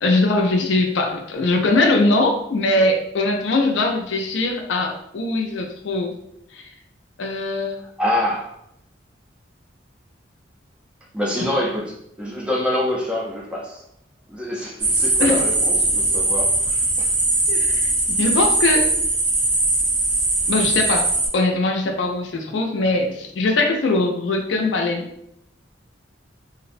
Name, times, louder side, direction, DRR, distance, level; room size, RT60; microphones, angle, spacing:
voice 1, 0.0-6.2 6.5-6.6 7.2-7.8 15.2-15.4 17.5-18.9 20.5-21.1 21.3-25.1, left 2 dB, 70° left, 3 dB, 0.4 m, -21 dB
voice 2, 8.0-8.5 11.1-13.8 14.3-17.1, left 1 dB, 5° right, -3 dB, 0.3 m, -26 dB
sound 1, 14.8-21.3, right 2 dB, 70° right, 0.8 m, -20 dB
2.5 x 2.1 x 2.5 m, 0.76 s
head